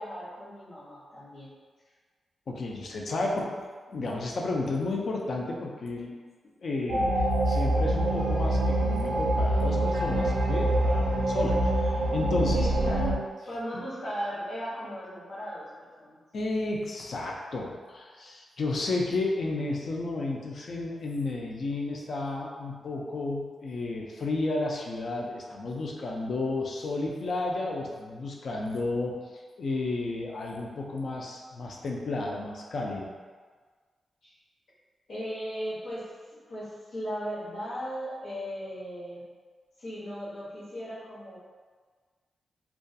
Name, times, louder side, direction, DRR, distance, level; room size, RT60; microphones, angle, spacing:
voice 1, 0.0-1.5 12.5-16.2 34.2-34.3 35.1-39.3 39.8-41.4, equal, 65° left, -9 dB, 0.9 m, -37 dB
voice 2, 2.5-3.5 3.9-6.2 6.6-12.7 16.3-29.2 29.6-33.1, left 2 dB, 50° left, -1 dB, 0.3 m, -32 dB
sound 1, 6.9-13.2, right 1 dB, 75° right, 0.4 m, -25 dB
2.3 x 2.3 x 2.6 m, 1.5 s
wide cardioid pair, 160°, 0 cm